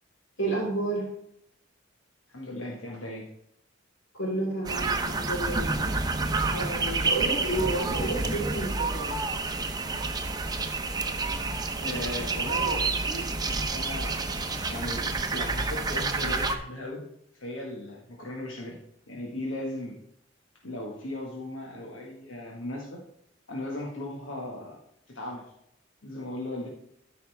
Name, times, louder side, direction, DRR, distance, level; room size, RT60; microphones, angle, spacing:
voice 1, 0.4-1.1 4.1-5.8 6.5-9.2, right 2 dB, 65° left, -4 dB, 4.1 m, -31 dB
voice 2, 2.3-3.3 11.8-17.0 17.4-18.8 19.1-20.0 20.6-23.0 23.5-24.8 25.1-25.4 26.0-26.7, left 1 dB, 90° left, -2 dB, 1.8 m, -37 dB
sound 1, 4.6-16.5, right 3 dB, 20° right, 0.8 m, -29 dB
13.5 x 5.8 x 3.5 m, 0.74 s
head